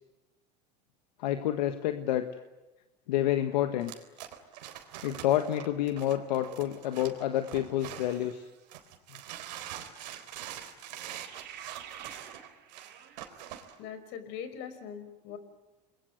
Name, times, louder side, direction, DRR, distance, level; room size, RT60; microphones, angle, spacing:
voice 1, 1.2-2.2 3.1-3.9 5.0-8.4, left 12 dB, 85° left, 8 dB, 1.6 m, -29 dB
sound 1, 3.8-8.3 8.7-13.8, right 11 dB, 85° right, 3.9 m, -44 dB
sound 2, 8.0-8.7 10.8-13.7, right 9 dB, 50° right, 4.2 m, -50 dB
voice 2, 13.8-15.4, left 8 dB, 65° left, 11 dB, 5.2 m, -41 dB
28.0 x 22.5 x 9.4 m, 1.1 s
supercardioid pair, 100°, 21 cm